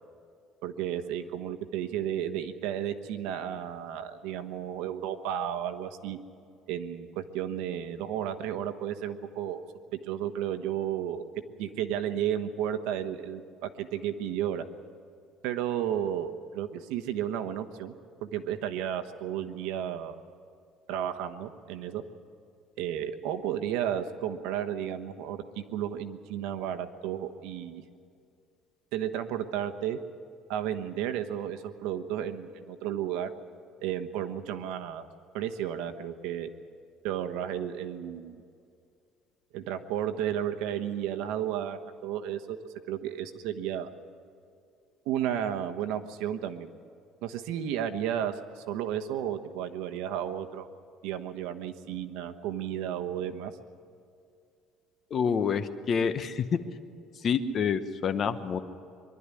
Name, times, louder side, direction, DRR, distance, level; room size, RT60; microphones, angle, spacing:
voice 1, 0.6-6.2 6.7-9.7 10.0-11.3 11.6-14.6 15.4-17.9 18.2-20.1 20.9-22.0 22.8-27.8 28.9-30.0 30.5-33.3 33.8-35.1 35.3-36.5 37.0-38.4 39.5-42.6 42.9-43.9 45.1-46.7 47.2-50.7 51.0-53.5, right 10 dB, 85° right, 8 dB, 1.2 m, -33 dB
voice 2, 55.1-56.6 57.2-58.6, left 6 dB, 35° left, 11 dB, 0.9 m, -27 dB
23.5 x 12.0 x 9.8 m, 2.3 s
cardioid pair, 160°, 0 cm